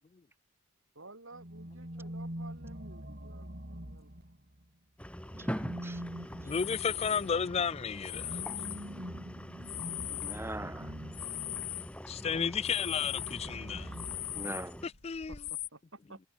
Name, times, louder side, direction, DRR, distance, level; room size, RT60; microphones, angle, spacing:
voice 1, 1.0-4.1 15.3-16.2, right 2 dB, 60° right, 3.6 m, -53 dB
sound 1, 1.3-4.6 5.3-11.9 12.9-14.8, equal, 40° right, 3.6 m, -45 dB
sound 2, 5.0-14.9, equal, 5° left, 2.7 m, -44 dB
voice 2, 5.4-6.0 6.4-6.5 10.1-10.9 14.3-14.8, right 1 dB, 10° right, 1.6 m, -42 dB
sound 3, 6.4-7.3 8.0-9.1 9.5-12.0 12.3-15.7, left 16 dB, 50° left, 2.6 m, -40 dB
voice 3, 6.4-8.4 12.1-13.9 15.0-15.4, left 6 dB, 25° left, 0.3 m, -32 dB
head